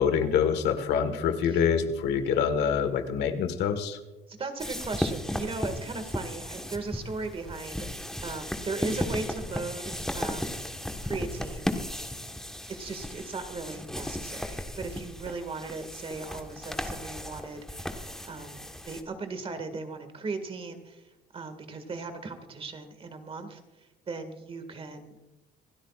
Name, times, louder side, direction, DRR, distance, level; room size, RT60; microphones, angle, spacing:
voice 1, 0.0-4.0, left 7 dB, 80° left, 8 dB, 1.6 m, -26 dB
voice 2, 4.3-7.9 8.2-10.6 11.0-11.7 12.7-17.9 18.2-21.0 21.3-25.3, right 3 dB, 35° right, 8 dB, 2.0 m, -37 dB
sound 1, 4.6-19.0, left 1 dB, 5° left, 1.3 m, -35 dB
26.5 x 13.0 x 2.4 m, 1.0 s
cardioid pair, 110°, 17 cm